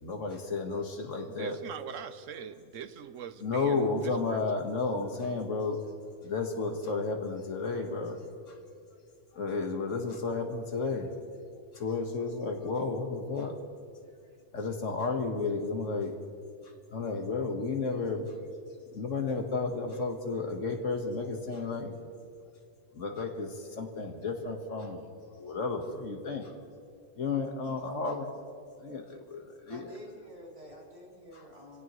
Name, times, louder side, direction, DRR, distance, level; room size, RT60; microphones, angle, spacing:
voice 1, 0.0-1.6 3.4-5.8 6.2-8.2 8.5-8.6 9.3-11.1 11.7-13.5 14.5-16.2 16.9-18.3 18.9-21.9 22.9-25.0 25.3-26.5 27.2-28.3 28.8-30.0 31.3-31.4, left 4 dB, 70° left, 3 dB, 1.8 m, -32 dB
voice 2, 1.3-4.4, right 8 dB, 75° right, 11 dB, 1.1 m, -43 dB
voice 3, 29.7-31.8, left 1 dB, 25° right, -4 dB, 3.2 m, -49 dB
26.0 x 17.0 x 3.1 m, 2.3 s
omnidirectional pair, 1.4 m